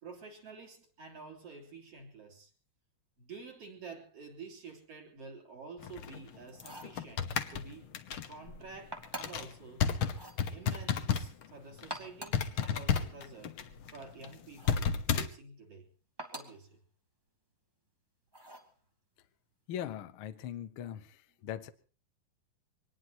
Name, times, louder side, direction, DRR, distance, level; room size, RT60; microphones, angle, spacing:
voice 1, 0.0-2.5 3.2-7.9 8.3-9.9 10.5-13.6 13.9-15.9 16.3-16.8, right 4 dB, 45° right, 0 dB, 4.1 m, -49 dB
sound 1, 5.8-11.5 11.7-11.9 12.3-15.3, left 7 dB, 70° left, 1.2 m, -32 dB
sound 2, 6.5-7.0 8.9-9.5 10.1-10.4 11.7-12.5 14.6-14.9 16.2-16.6 18.3-18.7, right 1 dB, 15° right, 0.9 m, -45 dB
voice 2, 19.7-21.7, left 10 dB, 90° left, 10 dB, 1.1 m, -40 dB
24.5 x 19.5 x 3.0 m, 0.36 s
omnidirectional pair, 4.1 m